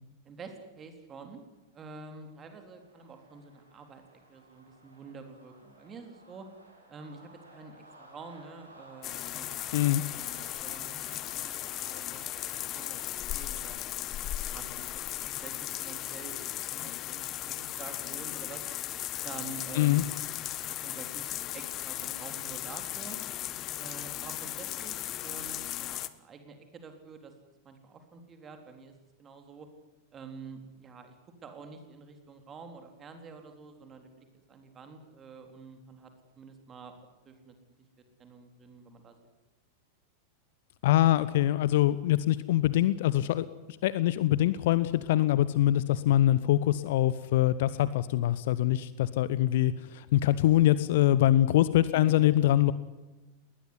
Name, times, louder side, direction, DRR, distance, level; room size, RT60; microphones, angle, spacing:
voice 1, 0.3-1.4 1.7-4.0 4.3-6.5 6.9-7.2 7.5-9.7 10.2-13.0 13.3-13.8 14.4-14.9 15.2-18.6 19.2-20.1 20.6-21.3 21.5-23.2 23.8-27.3 27.6-29.7 30.1-31.1 31.4-36.1 36.4-36.9 37.3-37.8 38.2-39.2 51.9-52.2, right 4 dB, 25° right, 5 dB, 3.9 m, -48 dB
sound 1, 2.1-18.4, right 1 dB, 80° right, 7.6 m, -56 dB
sound 2, 9.0-26.1, left 13 dB, 35° left, 1.3 m, -37 dB
voice 2, 40.8-43.4 43.8-52.7, left 13 dB, 55° left, 16 dB, 0.9 m, -24 dB
20.0 x 20.0 x 9.8 m, 1.1 s
figure-of-eight pair, 90°, 0 cm